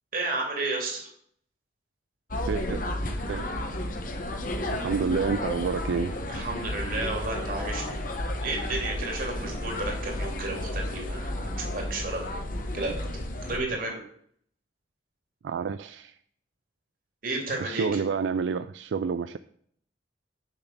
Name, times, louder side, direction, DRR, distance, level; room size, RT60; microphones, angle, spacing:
voice 1, 0.1-1.1 6.3-8.0 8.4-12.2 12.7-12.9 13.5-14.0 17.2-18.0, right 2 dB, 50° right, 1 dB, 2.7 m, -32 dB
sound 1, 2.3-13.6, left 1 dB, 50° left, 1.1 m, -32 dB
voice 2, 2.5-2.8 3.3-3.5 4.7-6.2 15.4-16.2 17.6-19.4, right 5 dB, 75° right, 12 dB, 0.3 m, -29 dB
6.8 x 5.9 x 6.9 m, 0.64 s
head